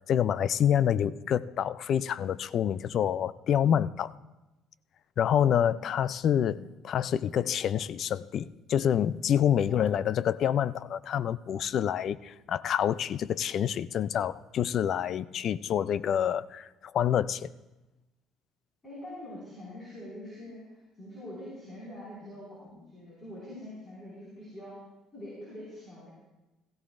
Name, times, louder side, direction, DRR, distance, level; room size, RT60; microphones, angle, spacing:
voice 1, 0.1-4.1 5.2-17.5, left 9 dB, 50° left, 0.4 m, -27 dB
voice 2, 9.6-9.9 18.8-24.7 25.1-26.1, left 1 dB, 20° left, 5.2 m, -44 dB
16.5 x 16.0 x 2.5 m
cardioid pair, 135°, 0 cm